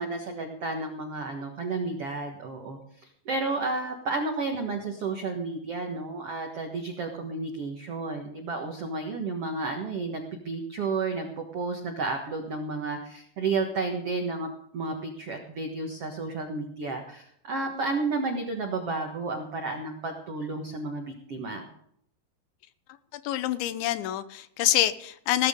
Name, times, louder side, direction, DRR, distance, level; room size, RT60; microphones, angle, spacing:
voice 1, 0.0-21.7, right 3 dB, 80° right, 3 dB, 1.3 m, -32 dB
voice 2, 23.1-25.5, left 13 dB, 85° left, 13 dB, 3.1 m, -26 dB
17.0 x 13.0 x 3.7 m, 0.70 s
omnidirectional pair, 5.2 m